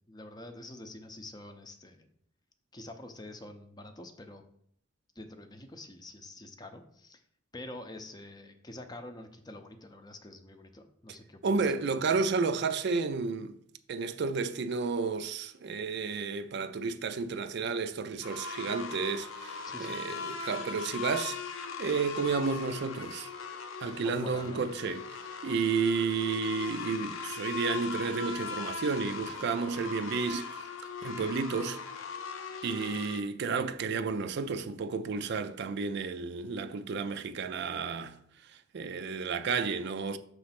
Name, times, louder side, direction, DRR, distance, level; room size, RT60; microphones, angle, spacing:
voice 1, 0.1-2.1 2.7-4.4 5.2-7.2 7.5-11.7 19.6-20.0 24.0-24.7, left 1 dB, 20° left, 0.6 m, -46 dB
voice 2, 11.4-13.6 13.9-21.4 21.8-23.3 23.8-30.7 31.0-31.8 32.6-38.2 38.5-40.2, right 4 dB, 55° right, 0.4 m, -32 dB
sound 1, 18.2-33.2, left 5 dB, 85° left, 0.7 m, -40 dB
6.6 x 3.2 x 5.8 m
head